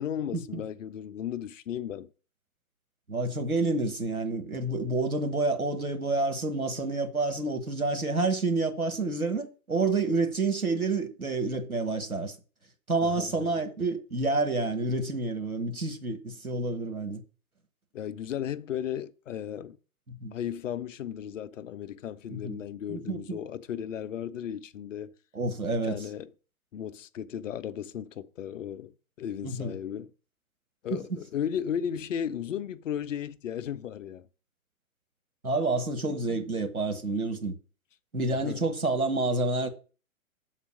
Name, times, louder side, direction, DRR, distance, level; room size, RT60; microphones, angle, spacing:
voice 1, 0.0-2.1 13.0-13.5 17.9-19.8 20.3-25.1 25.8-26.3 26.7-30.1 30.8-34.3 38.3-38.6, left 9 dB, 60° left, 0.7 m, -35 dB
voice 2, 3.1-12.3 12.9-17.2 20.1-20.3 22.3-22.6 22.9-23.4 25.3-26.0 29.4-29.7 30.9-31.0 35.4-37.5 38.1-39.7, right 3 dB, 90° right, 1.4 m, -29 dB
7.5 x 4.1 x 6.2 m
figure-of-eight pair, 110°, 42 cm